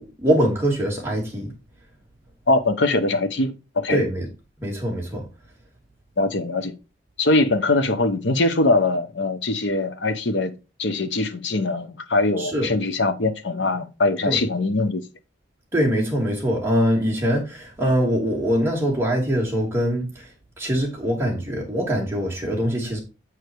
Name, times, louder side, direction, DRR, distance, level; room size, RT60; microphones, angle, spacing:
voice 1, 0.0-1.5 3.9-4.3 4.6-5.2 12.4-12.7 14.3-14.4 15.7-20.3 20.6-23.0, equal, 15° right, 2.8 m, -23 dB
voice 2, 2.5-4.0 6.2-6.8 7.2-10.5 10.8-15.0, left 2 dB, 70° left, 0.9 m, -22 dB
8.2 x 4.9 x 4.6 m
head